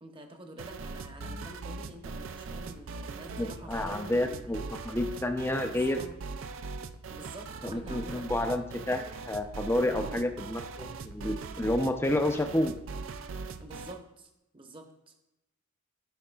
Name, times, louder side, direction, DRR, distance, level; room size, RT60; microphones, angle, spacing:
voice 1, 0.0-4.6 5.7-6.1 7.1-8.4 9.9-10.2 13.6-14.9, right 1 dB, 25° right, 4 dB, 0.9 m, -47 dB
sound 1, 0.6-14.0, right 4 dB, 70° right, 0.4 m, -41 dB
voice 2, 3.4-6.0 7.6-12.7, left 1 dB, 10° left, 6 dB, 0.5 m, -30 dB
12.5 x 5.8 x 2.3 m, 0.91 s
head